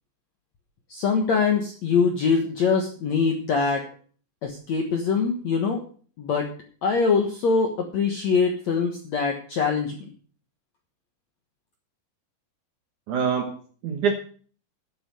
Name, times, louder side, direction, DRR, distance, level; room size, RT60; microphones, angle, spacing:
voice 1, 0.9-3.8 4.4-5.8 6.2-6.5 6.8-10.1, left 5 dB, 65° left, 3 dB, 1.8 m, -23 dB
voice 2, 13.1-14.1, right 6 dB, 65° right, 5 dB, 2.1 m, -25 dB
11.5 x 8.2 x 6.4 m, 0.42 s
omnidirectional pair, 5.1 m